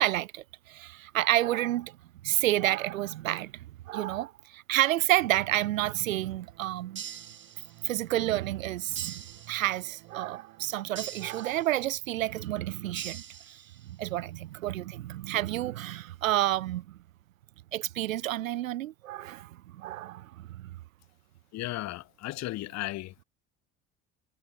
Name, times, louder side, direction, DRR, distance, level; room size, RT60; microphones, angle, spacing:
voice 1, 0.0-2.0 2.2-7.0 7.8-17.0 17.7-20.8, right 14 dB, 80° right, 0.6 m, -30 dB
sound 1, 5.8-11.4, right 25 dB, 60° right, 4.1 m, -55 dB
sound 2, 6.9-8.0 8.9-10.0 10.9-12.0 12.9-14.0, right 8 dB, 30° right, 1.3 m, -43 dB
voice 2, 21.5-23.2, left 17 dB, 40° left, 0.7 m, -35 dB
figure-of-eight pair, 55°, 40 cm